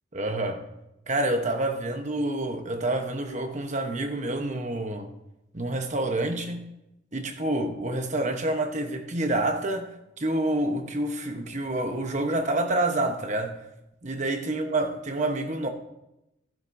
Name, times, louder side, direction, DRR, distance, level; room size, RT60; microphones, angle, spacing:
voice 1, 0.1-0.6 1.1-5.1 5.5-6.7 7.1-13.6 14.0-15.7, right 1 dB, 35° right, 1.0 m, -28 dB
15.0 x 10.5 x 2.7 m
head